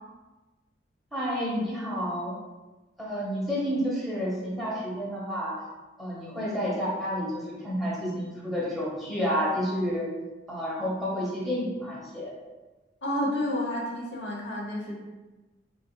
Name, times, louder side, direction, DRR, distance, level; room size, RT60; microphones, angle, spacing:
voice 1, 1.1-2.3 3.0-5.6 6.0-10.1 10.5-12.3, equal, ahead, -7 dB, 1.1 m, -30 dB
voice 2, 13.0-15.0, left 1 dB, 70° left, -2 dB, 0.9 m, -30 dB
4.1 x 3.6 x 2.3 m, 1.1 s
head